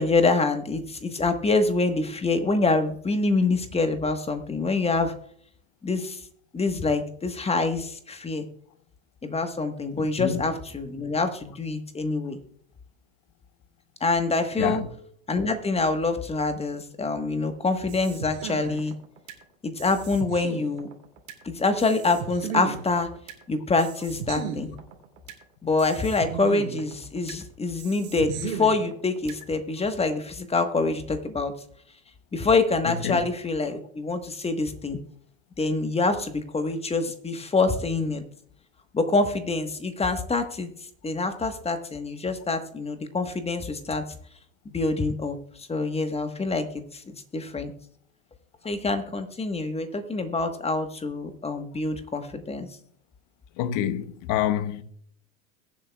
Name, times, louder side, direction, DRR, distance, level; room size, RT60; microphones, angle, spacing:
voice 1, 0.0-5.1 5.8-6.2 6.5-8.5 9.2-12.4 14.0-14.8 15.3-19.0 19.6-20.9 21.4-23.1 23.5-24.7 25.6-31.5 32.3-35.0 35.6-38.2 38.9-40.7 41.0-44.0 44.7-46.6 46.9-47.7 48.6-52.7, left 3 dB, 15° left, 1.3 m, -26 dB
voice 2, 10.0-10.4 14.6-14.8 33.0-33.3 53.6-54.8, left 11 dB, 50° left, 1.0 m, -27 dB
sound 1, 17.9-19.4 19.8-21.4 21.8-23.4 23.8-25.4 25.8-27.4 27.8-29.4, right 8 dB, 70° right, 2.6 m, -36 dB
22.0 x 7.4 x 2.3 m
hypercardioid pair, 95°, 41 cm